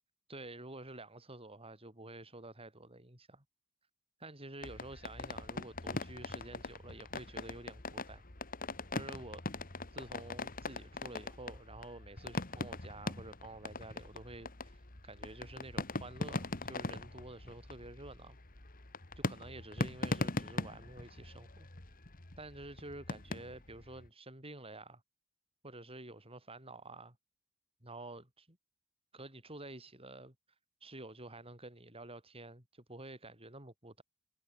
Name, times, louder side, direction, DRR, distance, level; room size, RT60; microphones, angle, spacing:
voice 1, 0.3-3.4 4.2-8.2 8.9-9.4 9.9-14.8 15.0-18.4 19.2-21.7 22.4-25.0 25.6-27.2 27.8-28.6 29.1-30.4 30.8-34.0, right 2 dB, 25° right, 7.6 m, -49 dB
sound 1, 4.6-24.1, left 2 dB, 40° left, 2.2 m, -41 dB
head